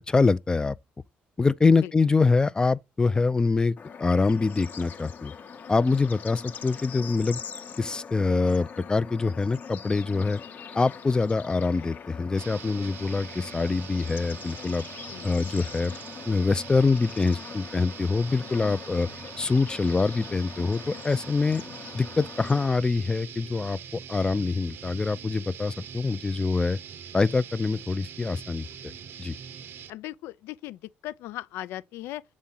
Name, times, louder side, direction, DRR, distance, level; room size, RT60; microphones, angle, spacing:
voice 1, 0.1-0.8 1.4-5.3 5.7-7.4 7.8-10.4 10.7-14.8 15.2-15.9 16.2-19.1 19.4-21.6 21.9-23.8 24.1-26.8 27.1-28.9 29.2-29.3, left 4 dB, 20° left, 0.4 m, -25 dB
Bird / Insect / Frog, 3.8-22.7, left 6 dB, 45° left, 0.9 m, -42 dB
sound 1, 12.3-29.9, right 8 dB, 65° right, 0.7 m, -43 dB
voice 2, 29.9-32.2, left 14 dB, 85° left, 0.4 m, -38 dB
7.3 x 4.2 x 3.8 m
cardioid pair, 105°, 4 cm